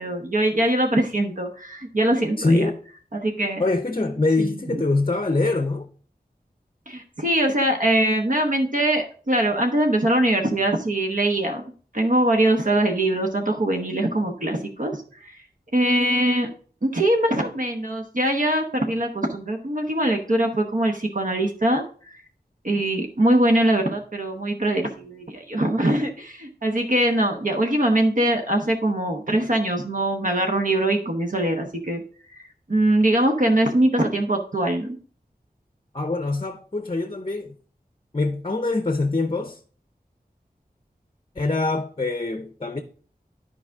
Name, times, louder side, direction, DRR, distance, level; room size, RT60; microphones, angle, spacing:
voice 1, 0.0-2.7 3.1-3.6 4.4-4.8 6.9-11.6 11.9-15.3 15.7-16.5 16.8-21.8 22.6-32.0 32.4-35.0, right 1 dB, 55° right, 1.0 m, -22 dB
voice 2, 2.4-2.8 3.6-5.9 35.9-37.5 38.1-39.6 41.4-42.8, left 2 dB, 35° left, 0.6 m, -24 dB
10.0 x 4.9 x 3.5 m
wide cardioid pair, 55°, 16 cm